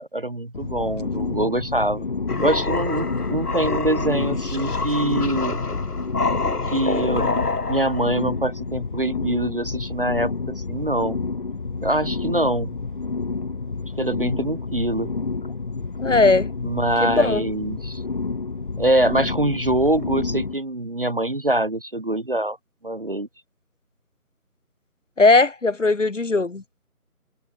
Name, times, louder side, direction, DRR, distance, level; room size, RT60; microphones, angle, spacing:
voice 1, 0.0-2.1 2.4-5.6 6.7-7.4 7.7-11.2 11.8-12.7 14.0-15.1 16.6-18.0 18.8-22.6 22.8-23.3, right 1 dB, 40° right, 0.9 m, -24 dB
sound 1, 0.5-20.5, left 4 dB, 35° left, 3.6 m, -29 dB
sound 2, 2.3-8.3, left 3 dB, 85° left, 1.6 m, -27 dB
voice 2, 16.0-16.5 17.0-17.4 25.2-26.6, left 3 dB, 55° left, 2.8 m, -18 dB
figure-of-eight pair, 165°, 45 cm